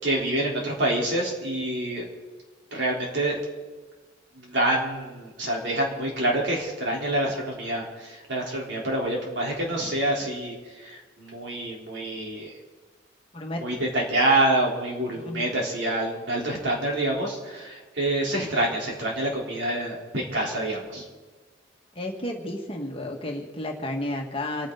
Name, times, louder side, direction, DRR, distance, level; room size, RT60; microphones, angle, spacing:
voice 1, 0.0-2.0 2.7-3.4 4.4-12.5 13.6-21.0, right 1 dB, 65° right, -2 dB, 3.9 m, -27 dB
voice 2, 22.0-24.7, left 1 dB, 30° left, 1 dB, 1.8 m, -32 dB
27.0 x 10.0 x 4.0 m, 1.3 s
head